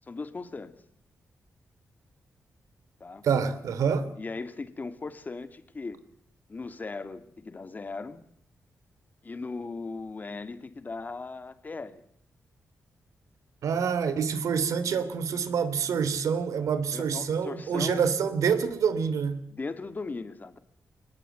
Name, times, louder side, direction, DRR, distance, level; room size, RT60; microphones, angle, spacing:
voice 1, 0.1-0.7 3.0-3.2 4.2-6.0 6.5-8.2 9.2-12.0 16.9-18.0 19.5-20.6, left 3 dB, 35° left, 2.4 m, -38 dB
voice 2, 3.2-4.1 13.6-19.5, right 6 dB, 90° right, 2.9 m, -27 dB
24.0 x 19.5 x 9.2 m
cardioid pair, 105°, 5 cm